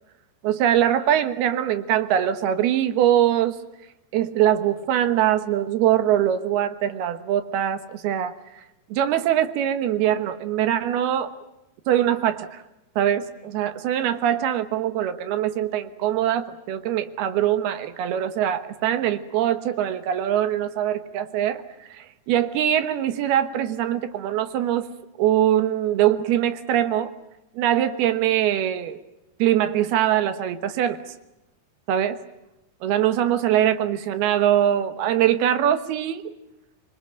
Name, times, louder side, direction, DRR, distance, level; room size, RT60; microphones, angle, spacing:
voice 1, 0.4-3.6 4.1-8.3 8.9-11.3 11.9-12.6 13.0-21.6 21.9-24.9 25.2-27.1 27.6-29.0 29.4-31.0 31.9-32.2 32.8-36.3, right 11 dB, 80° right, 11 dB, 3.2 m, -22 dB
25.5 x 22.0 x 9.0 m, 0.93 s
omnidirectional pair, 4.5 m